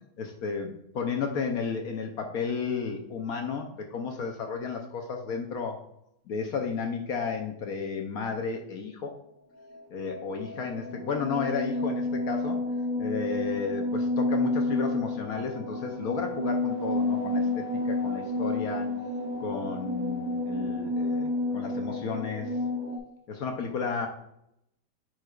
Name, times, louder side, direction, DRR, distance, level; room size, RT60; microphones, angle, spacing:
voice 1, 0.2-5.8 6.3-9.1 9.9-12.6 13.0-18.9 19.4-22.5 23.3-24.1, left 5 dB, 65° left, 3 dB, 1.1 m, -33 dB
sound 1, 9.6-23.0, left 2 dB, 50° right, 1.3 m, -30 dB
8.8 x 4.7 x 2.4 m, 0.77 s
omnidirectional pair, 1.9 m